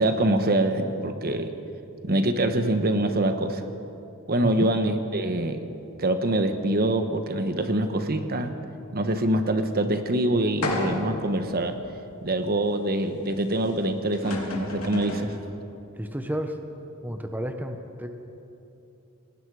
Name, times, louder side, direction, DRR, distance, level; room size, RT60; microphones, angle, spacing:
voice 1, 0.0-1.5 2.0-3.6 4.3-5.6 6.0-8.5 8.9-11.8 12.2-15.3, right 1 dB, 45° right, 7 dB, 1.2 m, -24 dB
sound 1, 10.6-11.2 11.9-12.0 13.8-13.9 14.1-15.3, left 2 dB, 85° left, 3.3 m, -30 dB
voice 2, 16.0-16.6 17.0-18.1, equal, 10° right, 5 dB, 1.1 m, -31 dB
29.0 x 19.0 x 4.9 m, 2.9 s
head